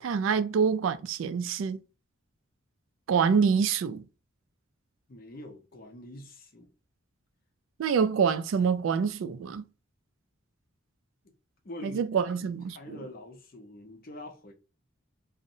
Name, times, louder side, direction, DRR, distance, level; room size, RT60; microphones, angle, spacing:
voice 1, 0.0-1.8 3.1-4.0 7.8-9.6 11.8-13.0, right 6 dB, 70° right, 0.3 m, -26 dB
voice 2, 5.1-6.7 11.2-11.3 11.6-14.5, left 1 dB, 45° left, 0.6 m, -45 dB
2.6 x 2.1 x 2.7 m
head